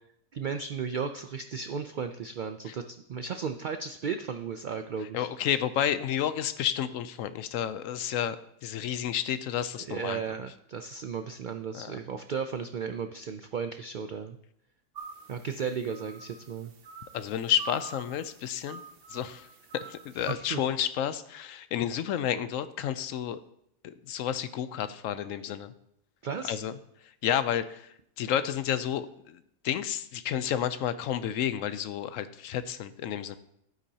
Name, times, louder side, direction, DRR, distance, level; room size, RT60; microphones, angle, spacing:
voice 1, 0.3-5.3 9.8-14.4 15.3-16.7 20.2-20.6 26.2-26.6, right 6 dB, 80° right, 8 dB, 0.4 m, -35 dB
voice 2, 5.1-8.4 8.6-10.2 11.7-12.0 17.1-18.8 19.1-19.5 19.7-23.4 23.8-25.7 26.4-26.7 27.2-29.4 29.6-33.4, left 10 dB, 75° left, 13 dB, 0.9 m, -31 dB
sound 1, 15.0-20.3, right 5 dB, 50° right, 0.9 m, -46 dB
12.0 x 9.2 x 2.8 m, 0.73 s
omnidirectional pair, 1.4 m